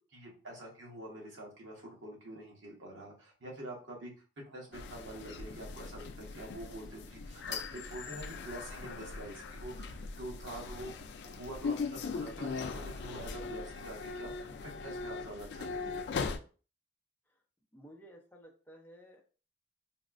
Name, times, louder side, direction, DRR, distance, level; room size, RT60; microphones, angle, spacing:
voice 1, 0.1-4.1 4.5-10.9 11.2-16.3, right 1 dB, 85° right, -2 dB, 1.2 m, -46 dB
sound 1, 4.7-16.4, left 4 dB, 60° left, 0.3 m, -40 dB
voice 2, 17.7-19.2, right 1 dB, 10° left, 0 dB, 0.5 m, -54 dB
4.0 x 2.1 x 2.5 m, 0.37 s
head